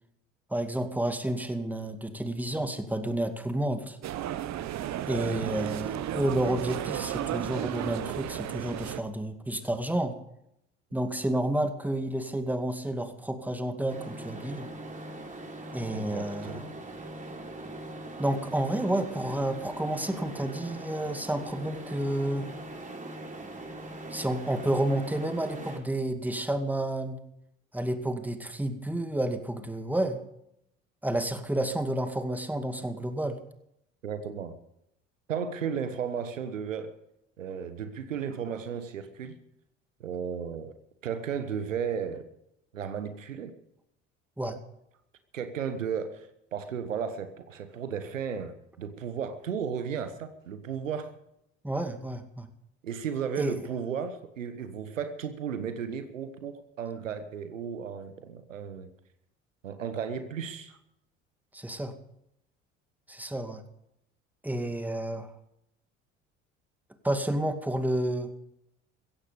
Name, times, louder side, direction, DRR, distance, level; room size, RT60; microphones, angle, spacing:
voice 1, 0.5-4.0 5.1-10.2 10.9-14.7 15.7-16.6 18.2-22.5 24.1-27.2 27.7-30.2 31.0-33.4 44.4-44.6 51.6-52.5 53.4-53.6 61.5-62.0 63.1-63.6 64.4-65.3 67.0-68.3, right 1 dB, 5° right, 7 dB, 2.2 m, -30 dB
sound 1, 4.0-9.0, right 11 dB, 45° right, 1.3 m, -33 dB
sound 2, 13.9-25.8, right 1 dB, 20° right, 3.7 m, -41 dB
voice 2, 15.9-16.8 34.0-34.6 35.3-36.9 37.4-39.4 40.0-40.7 41.0-42.3 42.7-43.5 45.3-51.1 52.8-58.9 59.6-60.8, right 7 dB, 80° right, 10 dB, 1.3 m, -34 dB
16.0 x 14.5 x 5.2 m, 0.78 s
figure-of-eight pair, 60°, 38 cm